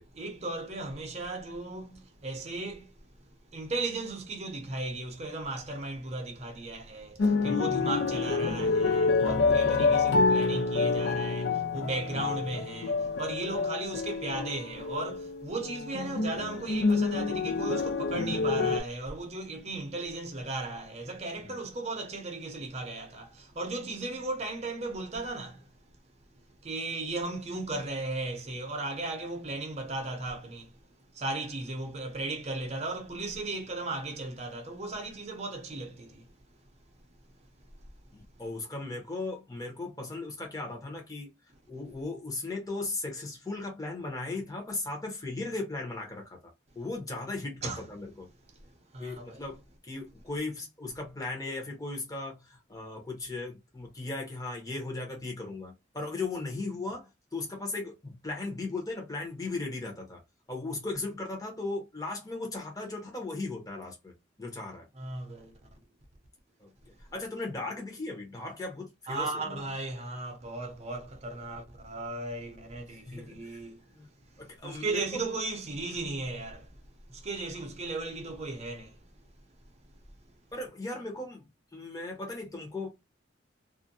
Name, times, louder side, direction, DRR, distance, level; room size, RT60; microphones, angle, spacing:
voice 1, 0.1-25.7 26.6-30.8 31.1-36.3 47.6-47.9 48.6-49.4 64.9-65.8 69.1-73.8 74.3-76.8 77.1-79.1, right 2 dB, 35° right, 0.6 m, -36 dB
sound 1, 7.2-18.8, left 4 dB, 70° left, 0.4 m, -27 dB
voice 2, 38.1-41.3 41.7-46.4 46.7-48.3 49.0-60.2 60.5-64.1 64.4-64.9 66.6-66.7 67.1-69.6 72.9-73.6 73.9-74.1 74.4-75.0 80.5-81.5 81.7-82.9, left 2 dB, 20° left, 0.8 m, -37 dB
2.5 x 2.1 x 2.6 m
head